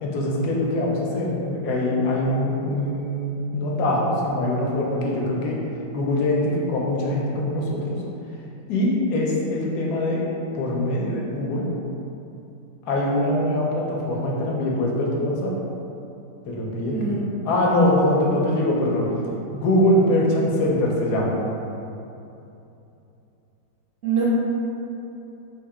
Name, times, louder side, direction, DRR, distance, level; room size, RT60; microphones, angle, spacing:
voice 1, 0.0-5.6 5.9-8.0 8.7-10.2 10.5-11.7 12.9-15.5 16.5-17.0 17.4-19.1 19.5-21.3, left 1 dB, 75° left, -3 dB, 1.1 m, -23 dB
voice 2, 17.6-18.4 19.2-19.3 24.0-24.2, right 5 dB, 70° right, -7 dB, 0.7 m, -27 dB
3.2 x 2.8 x 3.5 m, 2.8 s
omnidirectional pair, 1.8 m